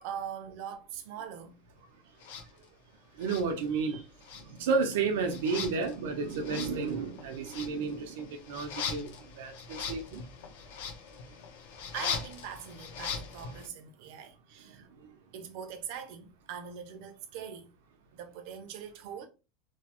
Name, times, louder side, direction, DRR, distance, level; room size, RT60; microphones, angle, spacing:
voice 1, 0.0-1.6 11.9-14.9 15.3-17.7 18.1-19.3, right 8 dB, 50° right, 0.5 m, -42 dB
sound 1, 2.2-2.5 3.2-4.0 4.2-13.7, left 6 dB, 80° left, 0.6 m, -40 dB
voice 2, 3.2-4.0 4.5-9.1 9.4-10.2, right 4 dB, 85° right, 0.7 m, -31 dB
3.0 x 2.0 x 2.9 m
supercardioid pair, 180°, 0 cm